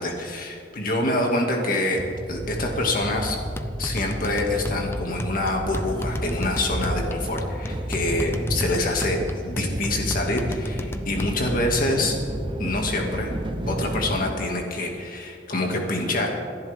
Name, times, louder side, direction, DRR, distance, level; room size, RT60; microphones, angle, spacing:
voice 1, 0.0-2.0 2.3-3.4 3.8-9.2 9.4-12.2 12.6-13.3 13.7-16.3, left 2 dB, 50° left, 1 dB, 2.2 m, -26 dB
sound 1, 2.0-14.3, right 1 dB, 25° right, 0.8 m, -32 dB
sound 2, 3.0-11.7, left 1 dB, 15° left, 0.6 m, -33 dB
27.5 x 10.5 x 3.6 m, 2.3 s
head